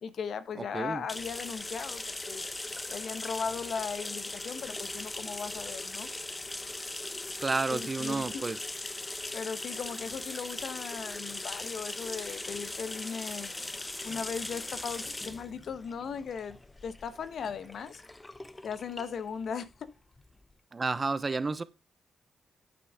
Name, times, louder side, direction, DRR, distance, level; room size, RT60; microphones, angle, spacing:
voice 1, 0.0-2.4 2.9-6.1 7.7-8.4 9.3-13.5 14.0-16.6 16.8-18.0 18.6-19.9, left 6 dB, 70° left, 1.1 m, -37 dB
voice 2, 0.6-1.0 7.4-8.6 20.7-21.6, right 3 dB, 40° right, 1.0 m, -31 dB
sound 1, 1.1-20.5, left 2 dB, 25° left, 1.0 m, -40 dB
10.0 x 8.9 x 3.6 m
supercardioid pair, 45°, 0 cm